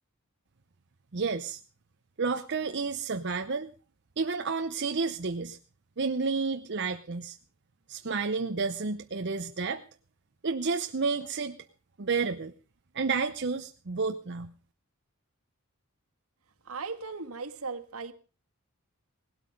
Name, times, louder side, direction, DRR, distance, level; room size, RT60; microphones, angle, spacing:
voice 1, 1.1-1.6 2.2-3.7 4.2-5.6 6.0-7.4 7.9-9.8 10.4-11.6 12.0-12.5 12.9-14.5, right 4 dB, 50° right, 0.7 m, -30 dB
voice 2, 16.6-18.1, right 4 dB, 80° right, 1.6 m, -37 dB
18.0 x 12.5 x 5.2 m
head